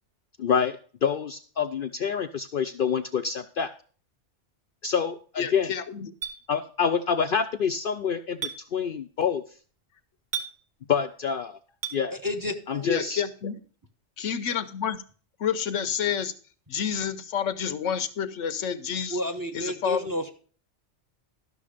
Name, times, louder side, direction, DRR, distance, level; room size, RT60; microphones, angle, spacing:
voice 1, 0.4-3.7 4.8-5.7 6.5-9.4 10.9-11.6 11.9-12.2 12.7-13.2, left 7 dB, 55° left, 7 dB, 0.7 m, -27 dB
voice 2, 5.4-6.1 12.8-13.6 14.2-15.0 15.4-16.3 16.7-19.2 19.5-20.1, left 7 dB, 90° left, 12 dB, 1.2 m, -29 dB
Chink clink, 6.2-6.4 8.4-8.6 10.3-10.5 11.8-12.0, right 7 dB, 40° right, 1.2 m, -31 dB
voice 3, 12.2-12.9 19.1-20.3, left 1 dB, 20° right, 6 dB, 1.0 m, -31 dB
12.5 x 6.3 x 5.0 m, 0.41 s
omnidirectional pair, 1.2 m